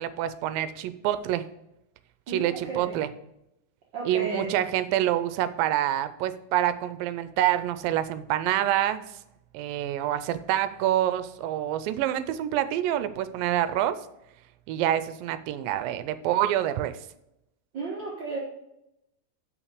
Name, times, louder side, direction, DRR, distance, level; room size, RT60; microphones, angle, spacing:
voice 1, 0.0-1.4 2.3-3.1 4.1-9.0 9.5-14.0 14.7-17.0, right 12 dB, 80° right, 13 dB, 2.2 m, -27 dB
voice 2, 2.3-3.0 3.9-4.5 17.7-18.4, right 3 dB, 65° right, -4 dB, 1.1 m, -33 dB
6.4 x 6.1 x 6.6 m, 0.85 s
omnidirectional pair, 4.2 m